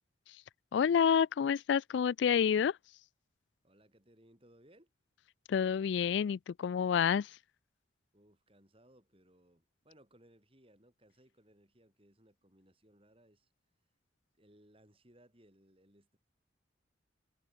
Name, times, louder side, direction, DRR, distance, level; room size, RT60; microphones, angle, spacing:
voice 1, 0.7-2.8 5.5-7.3, left 7 dB, 70° left, 0.3 m, -28 dB
voice 2, 3.6-4.9 8.1-13.5 14.3-16.2, right 1 dB, 30° right, 6.6 m, -64 dB
head